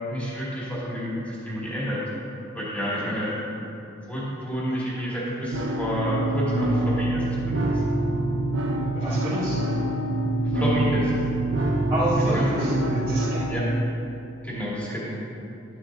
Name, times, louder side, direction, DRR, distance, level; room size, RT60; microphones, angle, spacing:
voice 1, 0.1-2.0 2.5-3.3 4.1-7.7 10.4-11.1 12.2-12.7 13.5-13.7 14.4-15.2, equal, 10° left, -8 dB, 2.5 m, -29 dB
voice 2, 2.8-3.2 8.9-9.6 11.9-13.4, right 1 dB, 25° right, -14 dB, 2.2 m, -29 dB
sound 1, 5.5-13.5, right 1 dB, 85° right, 1.1 m, -25 dB
12.0 x 11.0 x 2.7 m, 2.8 s
head